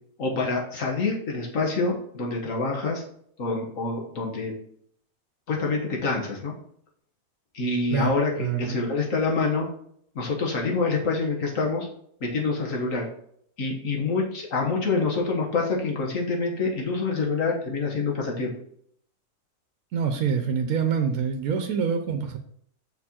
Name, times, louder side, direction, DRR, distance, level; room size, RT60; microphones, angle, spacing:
voice 1, 0.2-3.0 3.4-4.5 5.5-6.5 7.5-9.7 10.1-11.9 12.2-13.1 13.6-18.5, left 3 dB, 60° left, 0 dB, 1.6 m, -26 dB
voice 2, 8.4-8.8 19.9-22.4, right 6 dB, 70° right, 6 dB, 1.1 m, -26 dB
6.0 x 4.4 x 4.3 m, 0.66 s
omnidirectional pair, 1.6 m